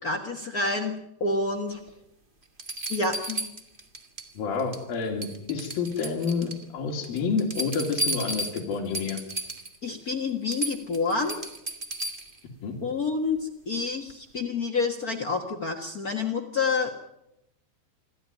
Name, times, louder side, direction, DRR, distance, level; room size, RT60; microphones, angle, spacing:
voice 1, 0.0-0.9 1.2-1.8 2.9-3.4 9.8-11.4 12.8-16.9, left 4 dB, 85° left, 3 dB, 0.8 m, -28 dB
sound 1, 1.9-2.0 2.6-4.3 4.6-4.9 5.2-6.6 7.0-9.8 10.1-10.2 10.5-12.4 14.1-14.2, right 1 dB, 55° right, 0.5 m, -34 dB
voice 2, 4.4-9.2 12.6-12.8, left 5 dB, 70° left, 0 dB, 4.0 m, -29 dB
27.0 x 13.0 x 9.2 m, 0.84 s
omnidirectional pair, 4.4 m